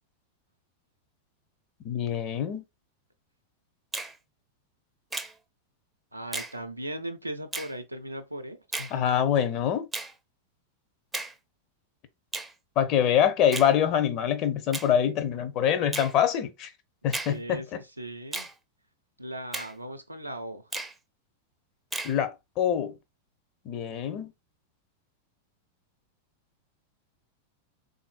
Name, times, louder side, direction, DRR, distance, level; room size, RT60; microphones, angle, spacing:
voice 1, 1.8-2.6 8.9-9.9 12.8-16.7 17.0-17.6 22.0-23.0 23.6-24.3, left 9 dB, 40° left, 0.6 m, -25 dB
Finger snapping, 3.9-4.1 5.1-5.3 6.3-6.5 7.5-7.7 8.7-8.9 9.9-10.1 11.1-11.3 12.3-12.5 13.5-13.7 14.7-14.9 15.9-16.1 17.1-17.4 18.3-18.5 19.5-19.7 20.7-20.9 21.9-22.2, right 2 dB, 10° right, 0.5 m, -34 dB
voice 2, 6.1-9.2 17.3-18.5 19.2-20.7, right 1 dB, 85° right, 0.5 m, -38 dB
3.6 x 2.6 x 2.4 m
figure-of-eight pair, 90°, 0 cm